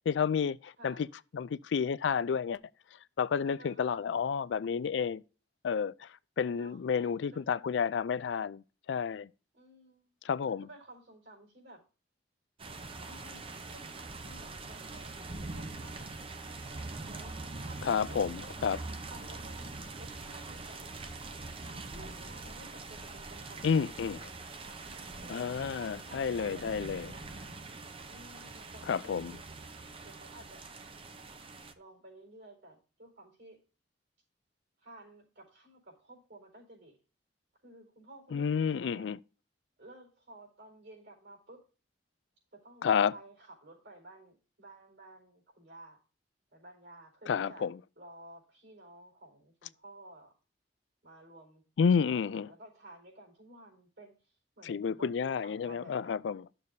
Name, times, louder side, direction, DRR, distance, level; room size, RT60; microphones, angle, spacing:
voice 1, 0.1-1.1 1.3-2.6 3.2-5.2 5.6-6.1 6.4-8.6 8.9-9.3 10.2-10.7 17.8-18.8 23.6-24.2 25.3-27.1 28.9-29.3 38.3-39.2 42.8-43.1 47.3-47.8 51.8-52.5 54.6-56.5, left 6 dB, 80° left, 0.4 m, -30 dB
voice 2, 0.8-1.1 3.4-4.1 6.5-7.6 9.5-10.1 10.4-11.8 13.0-16.4 17.1-18.5 19.1-20.9 21.5-24.1 25.2-27.6 28.1-29.4 30.0-30.7 31.7-33.6 34.8-37.0 37.6-39.1 39.8-41.7 42.5-46.0 46.5-47.7 48.0-50.3 51.0-51.6 52.0-56.3, right 1 dB, 70° right, 4.5 m, -54 dB
sound 1, 12.6-31.7, right 3 dB, 30° right, 0.7 m, -43 dB
13.0 x 6.8 x 2.7 m
head